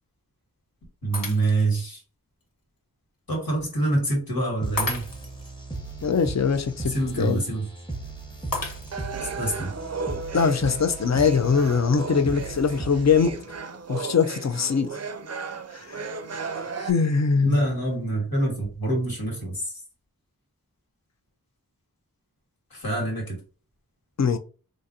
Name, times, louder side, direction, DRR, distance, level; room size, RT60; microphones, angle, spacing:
voice 1, 1.0-2.0 3.3-5.0 6.9-7.6 9.4-9.7 17.4-19.7 22.7-23.4, right 2 dB, 85° left, 1.6 m, -26 dB
Shatter, 1.1-1.8 2.4-2.5 4.8-5.5 8.5-9.3, left 2 dB, 70° left, 1.1 m, -32 dB
sound 1, 4.6-13.6, right 3 dB, 15° left, 0.9 m, -37 dB
voice 2, 6.0-7.4 10.3-13.3 13.9-15.0 15.7-17.6 24.2-24.4, left 5 dB, 50° left, 0.4 m, -22 dB
sound 2, 8.9-16.9, right 4 dB, 45° right, 0.4 m, -35 dB
3.8 x 2.5 x 2.6 m
wide cardioid pair, 55°, 35 cm